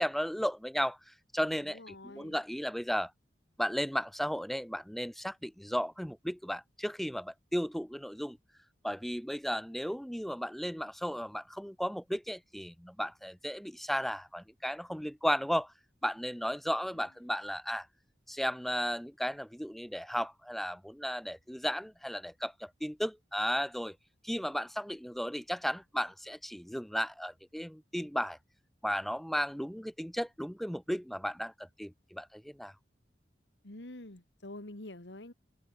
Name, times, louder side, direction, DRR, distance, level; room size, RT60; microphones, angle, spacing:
voice 1, 0.0-1.8 2.1-3.1 3.6-8.4 8.8-15.7 16.0-17.9 18.3-24.0 24.2-28.4 28.8-32.7, equal, ahead, 0.7 m, -34 dB
voice 2, 1.6-2.4 16.9-17.1 33.6-35.3, left 1 dB, 80° left, 2.4 m, -47 dB
open air
head